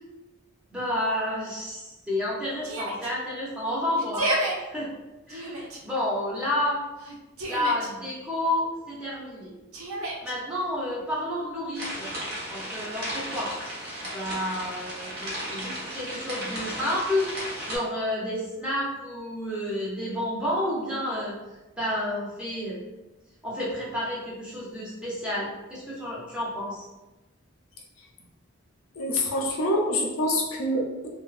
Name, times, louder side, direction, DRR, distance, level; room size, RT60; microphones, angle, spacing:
voice 1, 0.7-4.3 4.6-4.9 5.3-6.8 7.5-9.5 10.2-12.1 12.5-13.5 14.0-21.3 21.8-22.8 23.4-26.8, left 1 dB, 5° right, -7 dB, 0.5 m, -30 dB
Yell, 2.6-3.1 4.0-4.5 5.3-5.8 7.0-7.9 9.7-10.3, right 1 dB, 80° right, 0.5 m, -30 dB
sound 1, 11.7-17.8, equal, 50° right, 0.7 m, -35 dB
voice 2, 29.0-31.1, left 1 dB, 75° left, -1 dB, 0.5 m, -26 dB
2.7 x 2.1 x 2.4 m, 1.1 s
head